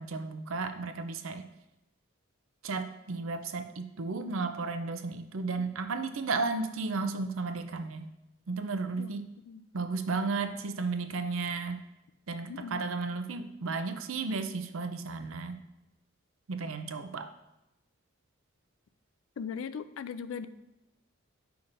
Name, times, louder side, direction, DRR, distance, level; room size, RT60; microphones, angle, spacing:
voice 1, 0.0-1.4 2.6-8.1 8.5-9.3 9.7-11.8 12.3-15.6 16.5-17.3, right 4 dB, 80° right, 8 dB, 0.5 m, -34 dB
voice 2, 9.0-9.7 12.5-12.8 19.4-20.5, left 6 dB, 75° left, 13 dB, 0.4 m, -39 dB
8.7 x 5.7 x 2.6 m, 0.92 s
head